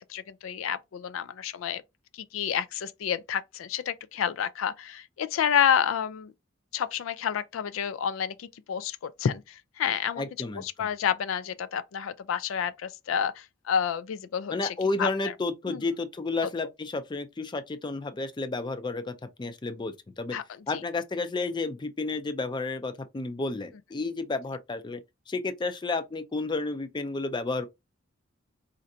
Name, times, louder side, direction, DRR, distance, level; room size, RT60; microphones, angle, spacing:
voice 1, 0.0-1.8 2.1-6.3 6.7-10.3 10.5-15.1 15.7-15.8 20.3-20.4 20.7-20.8, left 8 dB, 85° left, 0.4 m, -29 dB
voice 2, 10.2-10.9 14.5-20.4 20.7-25.0 25.3-27.7, left 3 dB, 25° left, 0.4 m, -31 dB
4.3 x 2.5 x 2.6 m
head